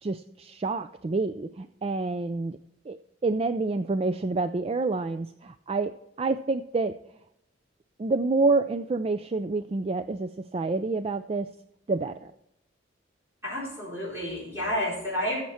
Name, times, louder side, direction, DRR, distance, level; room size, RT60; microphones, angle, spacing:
voice 1, 0.0-2.6 2.9-3.0 3.2-5.9 6.2-6.9 8.0-11.5 11.9-12.2, right 3 dB, 30° right, 11 dB, 0.4 m, -28 dB
voice 2, 13.4-15.4, equal, 15° right, -7 dB, 4.4 m, -30 dB
14.5 x 7.4 x 4.3 m, 0.80 s
head